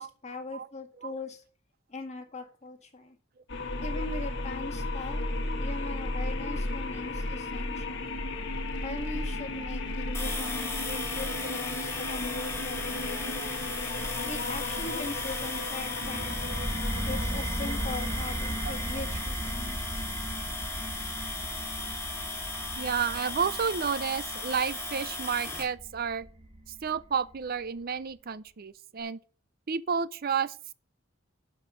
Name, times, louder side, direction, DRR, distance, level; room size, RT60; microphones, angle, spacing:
voice 1, 0.0-1.4 1.9-3.2 3.8-5.2 5.6-8.1 8.8-13.5 14.3-16.6 17.0-19.9, left 3 dB, 35° left, 2.0 m, -40 dB
sound 1, 3.5-19.4, left 2 dB, 60° left, 1.8 m, -35 dB
sound 2, 10.1-25.6, left 2 dB, 15° left, 2.8 m, -37 dB
voice 2, 13.4-13.8 18.6-18.7 22.8-26.3 26.7-29.2 29.7-30.7, right 6 dB, 45° right, 0.6 m, -31 dB
sound 3, 16.0-27.4, right 1 dB, 25° right, 1.6 m, -37 dB
11.5 x 5.4 x 6.3 m
head